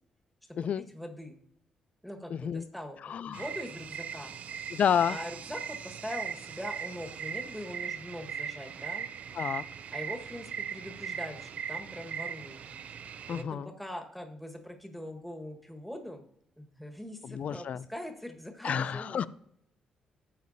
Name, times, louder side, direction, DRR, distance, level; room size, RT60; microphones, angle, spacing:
voice 1, 0.9-1.4 2.0-4.3 5.1-9.1 9.9-12.6 13.3-16.3 16.6-19.2, left 1 dB, 5° left, 4 dB, 1.5 m, -42 dB
voice 2, 2.3-2.6 3.0-3.4 4.7-5.2 9.4-9.6 13.3-13.7 17.2-17.8 18.6-19.3, left 8 dB, 55° left, 18 dB, 0.4 m, -30 dB
sound 1, 3.3-13.4, right 8 dB, 60° right, 0.6 m, -39 dB
12.5 x 7.8 x 2.7 m, 0.75 s
hypercardioid pair, 45°, 3 cm